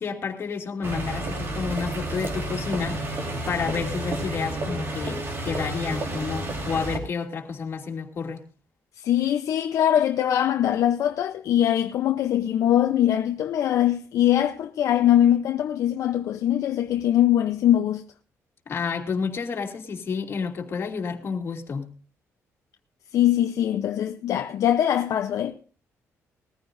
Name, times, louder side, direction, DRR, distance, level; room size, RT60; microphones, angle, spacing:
voice 1, 0.0-3.0 3.5-8.4 18.7-21.9, left 5 dB, 45° left, 2.8 m, -30 dB
sound 1, 0.8-7.0, right 1 dB, 45° right, 4.0 m, -30 dB
voice 2, 9.0-18.0 23.1-25.5, left 11 dB, 70° left, 0.8 m, -22 dB
20.5 x 14.5 x 2.7 m
cardioid pair, 125°, 6 cm